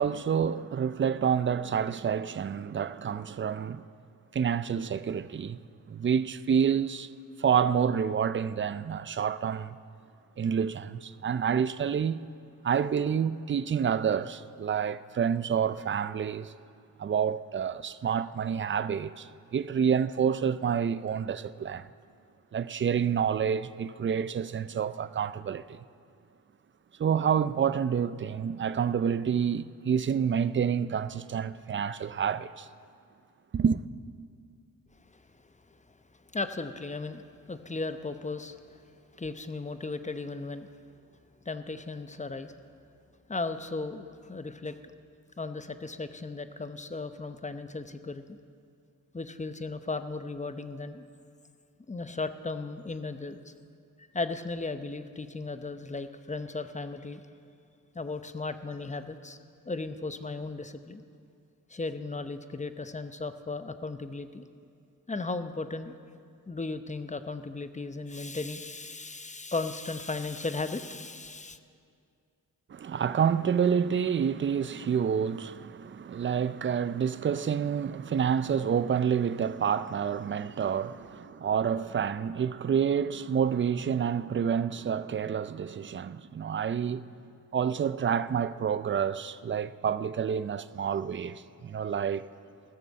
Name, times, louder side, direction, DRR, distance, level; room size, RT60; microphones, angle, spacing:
voice 1, 0.0-3.8 4.3-5.6 5.9-7.1 7.4-9.8 10.4-12.2 12.6-16.5 17.0-21.9 22.5-25.8 27.0-32.7 33.5-33.8 72.7-87.0 87.5-92.2, right 7 dB, 35° right, 0.4 m, -28 dB
voice 2, 36.3-38.6 39.2-40.7 41.5-42.5 43.3-44.8 45.4-48.4 49.1-51.0 51.9-53.5 54.1-57.2 57.9-59.4 59.7-61.0 61.7-64.4 65.1-66.0 66.5-71.6, left 3 dB, 20° left, 0.7 m, -36 dB
16.0 x 6.7 x 7.5 m
cardioid pair, 55°, 37 cm